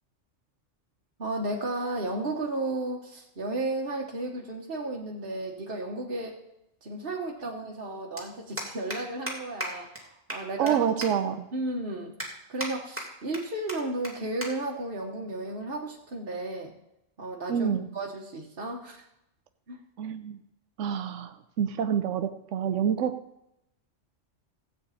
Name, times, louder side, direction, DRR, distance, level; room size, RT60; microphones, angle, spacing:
voice 1, 1.2-6.4 6.8-10.8 11.5-12.1 12.5-16.7 17.2-17.7 17.9-19.0 19.7-19.8, right 2 dB, 50° right, -2 dB, 1.5 m, -33 dB
sound 1, 5.9-6.0 7.4-7.5 7.7-7.9 8.2-8.3 8.6-9.0 9.3-9.4 9.6-9.7 9.9-10.0 10.3-10.7 11.0-11.1 11.6-11.7 12.2-12.7 13.0-13.4 13.7-13.8 14.0-14.1 14.4-14.5 14.8-15.0 15.8-16.1, right 1 dB, 10° right, 2.3 m, -35 dB
voice 2, 10.6-11.5 17.5-17.9 20.0-20.4 20.8-23.3, right 8 dB, 85° right, 8 dB, 1.0 m, -28 dB
15.0 x 8.5 x 4.2 m, 0.84 s
omnidirectional pair, 1.2 m